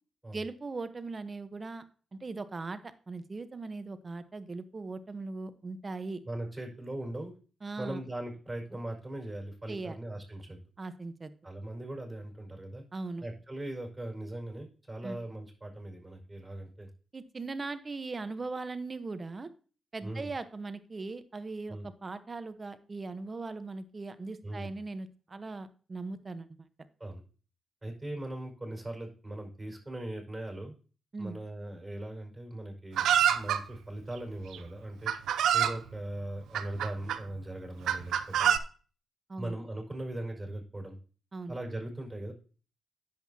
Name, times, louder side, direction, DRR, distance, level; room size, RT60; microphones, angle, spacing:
voice 1, 0.3-1.8 2.1-6.2 7.6-8.0 9.7-10.0 10.8-11.3 12.9-13.2 15.0-15.2 17.1-19.5 19.9-26.7 31.1-31.4 39.3-39.5 41.3-41.5, right 3 dB, 40° right, 12 dB, 1.0 m, -39 dB
voice 2, 6.2-7.3 7.8-10.6 11.4-12.8 13.2-16.9 20.0-20.3 21.7-21.9 24.4-24.7 27.0-27.2 27.8-30.7 31.2-35.1 35.5-38.6 39.4-41.0 41.5-42.3, right 1 dB, 20° right, 1 dB, 5.2 m, -39 dB
Chicken rooster, 33.0-33.6 34.5-34.6 35.1-35.8 36.5-37.2 37.9-38.6, right 9 dB, 80° right, 0.5 m, -26 dB
10.5 x 7.8 x 2.8 m, 0.39 s
supercardioid pair, 45°, 0 cm